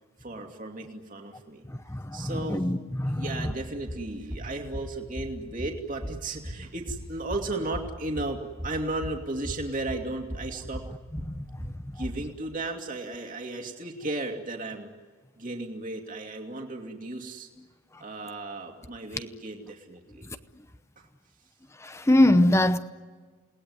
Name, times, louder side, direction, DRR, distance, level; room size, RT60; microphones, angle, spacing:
voice 1, 0.2-1.6 2.1-2.6 3.0-10.8 11.9-14.9 15.4-17.5 18.0-20.3, right 2 dB, 35° right, 2.6 m, -35 dB
voice 2, 1.7-3.5 11.3-11.4 11.9-12.0 21.8-22.8, left 1 dB, 15° left, 0.8 m, -23 dB
sound 1, 3.4-12.3, equal, 15° right, 2.5 m, -39 dB
29.0 x 19.5 x 9.7 m
head